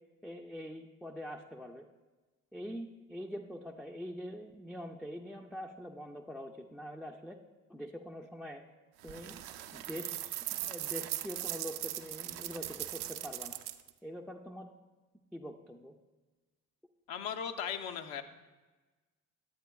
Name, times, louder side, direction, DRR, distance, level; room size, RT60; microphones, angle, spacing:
voice 1, 0.2-1.9 2.5-7.4 7.7-8.6 9.0-9.3 9.7-13.6 14.0-14.7 15.3-15.9, equal, ahead, 1 dB, 0.4 m, -44 dB
sound 1, 9.0-13.9, right 14 dB, 70° right, 0.5 m, -39 dB
voice 2, 17.1-18.2, left 8 dB, 65° left, 6 dB, 0.7 m, -37 dB
10.5 x 7.8 x 2.3 m, 1.2 s
hypercardioid pair, 60°, 39 cm